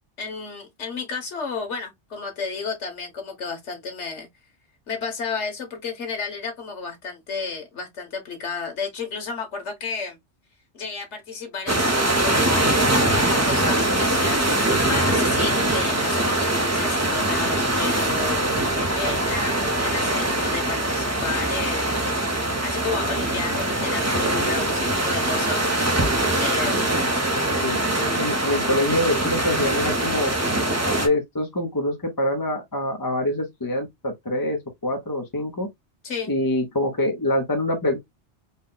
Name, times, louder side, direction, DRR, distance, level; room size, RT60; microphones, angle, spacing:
voice 1, 0.2-4.3 4.9-10.2 10.7-18.4 19.0-22.3 22.6-25.7 26.4-27.0 36.0-36.3, left 5 dB, 90° left, 1.5 m, -32 dB
sound 1, 11.7-31.1, right 1 dB, 15° right, 0.8 m, -22 dB
voice 2, 27.3-30.3 31.0-35.7 36.3-38.0, left 1 dB, 20° left, 0.7 m, -25 dB
4.1 x 2.3 x 3.8 m
omnidirectional pair, 1.2 m